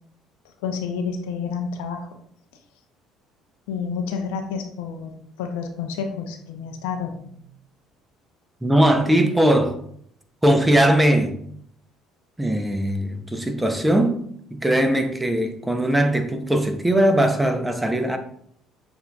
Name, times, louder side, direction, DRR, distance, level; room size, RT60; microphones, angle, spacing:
voice 1, 0.6-2.1 3.7-5.1 5.4-7.4, left 6 dB, 85° left, 0.5 m, -29 dB
voice 2, 8.6-9.8 10.4-11.4 12.4-14.2 14.5-18.2, right 1 dB, 10° right, 0.6 m, -20 dB
6.8 x 2.5 x 2.3 m
supercardioid pair, 75°, 0 cm